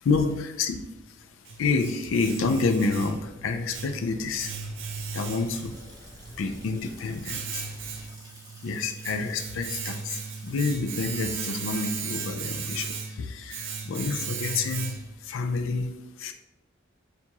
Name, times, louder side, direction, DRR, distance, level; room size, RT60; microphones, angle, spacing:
voice 1, 0.0-0.8 1.6-4.5 5.1-5.8 6.4-7.6 8.6-15.0 15.3-15.9 16.2-16.3, left 4 dB, 80° left, 8 dB, 0.4 m, -28 dB
Domestic sounds home sounds, 0.9-15.3, right 5 dB, 70° right, 0.5 m, -37 dB
sound 1, 2.1-8.1, equal, 20° left, 1.1 m, -51 dB
Water tap faucet / Sink (filling or washing) / Splash splatter, 4.7-13.3, right 2 dB, 20° right, 0.7 m, -52 dB
4.5 x 2.5 x 2.8 m, 0.96 s
head